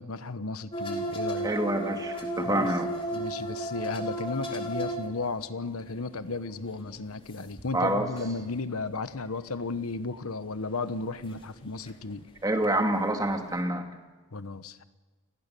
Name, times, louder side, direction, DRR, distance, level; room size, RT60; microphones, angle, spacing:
voice 1, 0.0-1.5 2.4-2.7 3.1-12.2 14.3-14.8, left 3 dB, 75° left, 12 dB, 1.1 m, -34 dB
sound 1, 0.7-5.4 5.8-6.2 6.5-8.5 9.1-9.3 11.2-11.6 11.8-11.9 12.6-13.2 13.6-13.7, right 1 dB, 25° left, 4.0 m, -34 dB
voice 2, 1.4-2.9 7.7-8.1 12.4-13.8, right 1 dB, 20° right, 4 dB, 2.4 m, -27 dB
29.5 x 19.5 x 6.9 m, 1.3 s
head